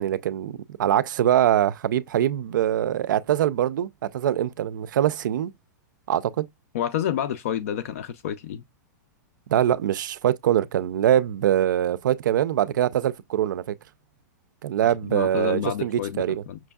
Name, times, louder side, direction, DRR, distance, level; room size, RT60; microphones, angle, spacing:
voice 1, 0.0-5.5 6.1-6.5 9.5-13.6 14.6-16.4, right 11 dB, 90° right, 0.4 m, -23 dB
voice 2, 6.7-8.6 15.1-16.6, left 9 dB, 50° left, 0.4 m, -29 dB
5.9 x 2.6 x 2.3 m
supercardioid pair, 180°, 10 cm